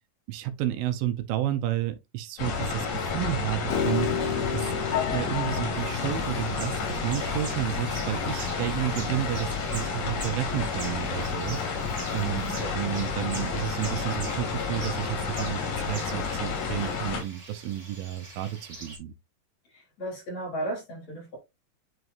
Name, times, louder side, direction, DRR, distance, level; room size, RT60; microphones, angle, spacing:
voice 1, 0.3-4.1 4.5-4.7 5.1-11.8 12.1-19.1, right 13 dB, 80° right, 2.4 m, -31 dB
sound 1, 2.4-17.2, left 5 dB, 90° left, 3.8 m, -31 dB
Piano, 3.7-9.9, left 8 dB, 65° left, 2.4 m, -33 dB
sound 2, 5.8-19.0, right 2 dB, 25° right, 1.6 m, -45 dB
voice 2, 12.2-12.6 19.7-21.4, right 2 dB, 50° left, 4.5 m, -35 dB
8.0 x 4.6 x 2.5 m
omnidirectional pair, 4.1 m